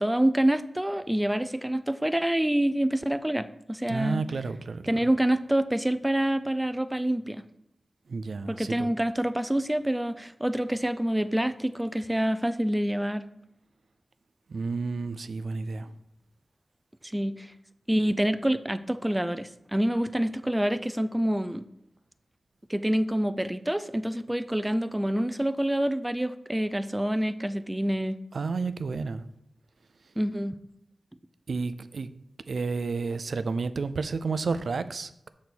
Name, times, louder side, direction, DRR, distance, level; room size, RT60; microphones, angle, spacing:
voice 1, 0.0-4.2 4.9-7.5 8.5-13.3 17.1-17.5 17.9-21.6 22.7-28.2 30.2-30.6, right 1 dB, 10° right, 0.4 m, -27 dB
voice 2, 3.9-5.1 8.1-8.9 14.5-15.9 28.3-29.2 31.5-32.1 32.5-35.3, right 4 dB, 70° right, 0.4 m, -31 dB
6.8 x 4.2 x 6.1 m
wide cardioid pair, 70°, 0 cm